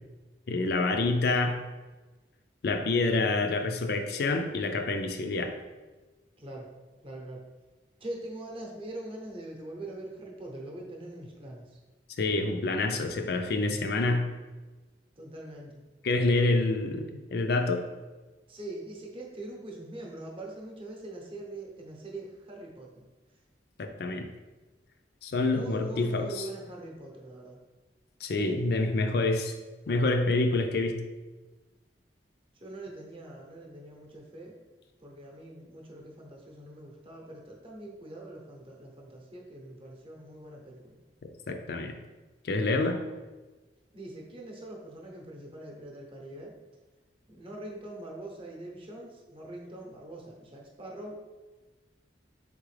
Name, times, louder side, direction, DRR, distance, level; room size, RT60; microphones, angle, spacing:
voice 1, 0.5-1.6 2.6-5.5 12.2-14.2 16.0-17.8 23.8-24.3 25.2-26.4 28.2-29.5 29.9-31.0 41.5-42.0 42.4-43.0, left 2 dB, 60° left, 5 dB, 0.4 m, -27 dB
voice 2, 6.4-6.7 7.0-7.4 8.0-11.8 15.2-15.8 18.5-23.0 25.5-27.6 32.5-34.6 35.0-41.0 43.9-46.5 47.3-51.2, right 1 dB, 30° right, -1 dB, 0.8 m, -43 dB
4.1 x 3.6 x 3.2 m, 1.2 s
head